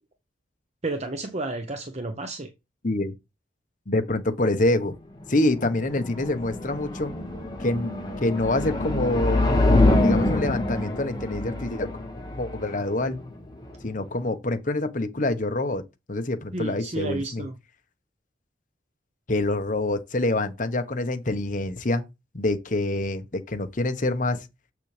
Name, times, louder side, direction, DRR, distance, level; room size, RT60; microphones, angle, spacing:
voice 1, 0.8-2.5 16.5-17.5, right 2 dB, 40° right, 0.9 m, -31 dB
voice 2, 3.9-4.9 5.3-7.2 7.6-7.9 8.2-9.5 10.0-11.9 12.3-13.2 13.8-15.8 16.1-17.5 19.3-22.0 22.3-24.5, left 2 dB, 45° left, 1.2 m, -26 dB
sound 1, 5.2-14.2, left 2 dB, 25° left, 1.7 m, -25 dB
7.6 x 6.4 x 3.4 m
head